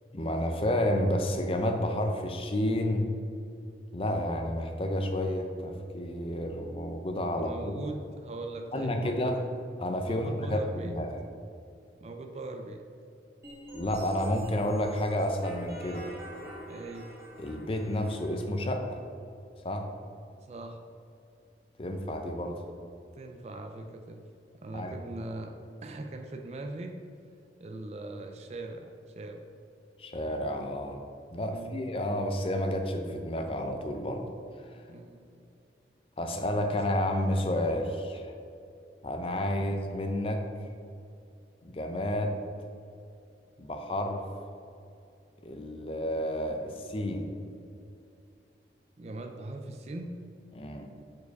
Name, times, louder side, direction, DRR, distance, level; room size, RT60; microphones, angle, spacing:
voice 1, 0.1-3.1 3.9-7.7 8.7-9.4 9.8-11.1 13.7-16.1 17.4-19.0 19.6-19.9 21.8-22.6 24.7-24.9 30.0-31.0 31.3-34.2 34.6-34.8 36.2-38.3 39.0-40.4 41.6-42.4 43.6-44.2 45.4-47.3 50.5-50.9, left 1 dB, 30° left, 4 dB, 0.5 m, -30 dB
voice 2, 7.4-9.3 10.0-11.0 12.0-12.8 16.7-17.1 20.4-20.8 23.1-24.2 24.6-25.5 25.8-27.0 27.6-29.5 31.4-31.8 34.9-35.5 49.0-50.2, right 2 dB, 35° right, 4 dB, 0.3 m, -40 dB
sound 1, 13.4-18.4, equal, 15° right, 1.3 m, -45 dB
4.7 x 4.7 x 4.7 m, 2.5 s
head